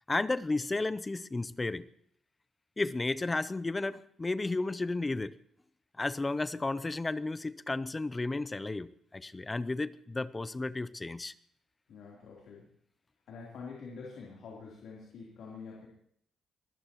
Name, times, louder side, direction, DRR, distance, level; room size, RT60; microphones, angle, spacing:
voice 1, 0.1-1.9 2.8-5.3 6.0-11.3, left 2 dB, 20° left, 16 dB, 0.6 m, -33 dB
voice 2, 11.9-12.7 13.3-15.9, left 5 dB, 75° left, -3 dB, 3.6 m, -46 dB
23.0 x 16.0 x 3.1 m, 0.66 s
cardioid pair, 90°, 0 cm